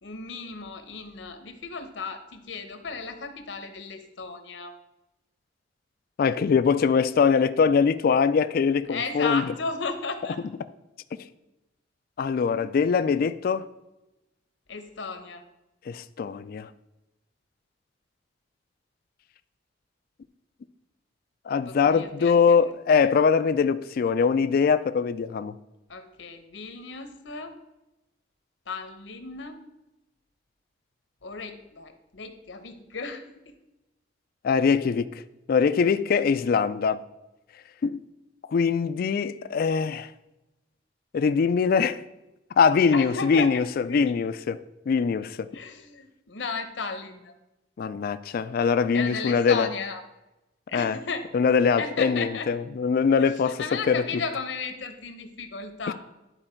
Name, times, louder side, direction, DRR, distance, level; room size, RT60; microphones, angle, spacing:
voice 1, 0.0-4.8 8.9-10.4 14.7-15.4 21.7-22.6 25.9-27.6 28.7-29.6 31.2-33.6 42.9-44.2 45.5-47.3 48.9-50.0 50.7-51.3 51.8-52.5 53.2-55.9, left 4 dB, 75° left, 0.9 m, -34 dB
voice 2, 6.2-9.5 12.2-13.6 15.9-16.7 21.5-25.6 34.4-35.1 35.5-37.0 37.8-38.0 38.5-40.1 41.1-42.0 42.6-44.6 44.9-45.5 47.8-49.7 50.7-51.0 51.3-54.0 55.9-56.0, left 6 dB, 55° left, 0.3 m, -22 dB
11.0 x 4.3 x 4.4 m
head